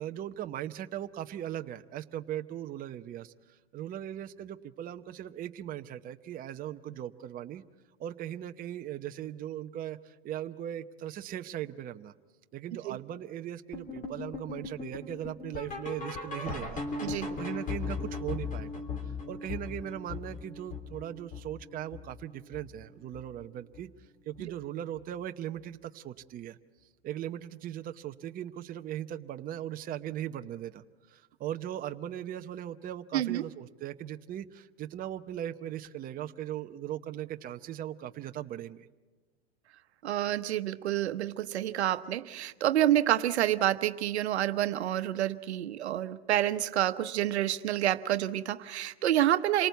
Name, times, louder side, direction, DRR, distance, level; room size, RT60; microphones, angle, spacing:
voice 1, 0.0-7.6 8.0-12.1 12.5-23.9 24.3-26.6 27.0-38.9, right 11 dB, 25° right, 8 dB, 0.8 m, -39 dB
sound 1, 13.7-22.8 23.1-23.4 23.7-23.8 24.4-24.5 25.0-25.1, left 4 dB, 25° left, 3.3 m, -38 dB
voice 2, 33.1-33.5 40.0-49.7, right 12 dB, 80° right, 11 dB, 1.0 m, -28 dB
27.0 x 19.0 x 8.2 m, 1.3 s
hypercardioid pair, 115°, 32 cm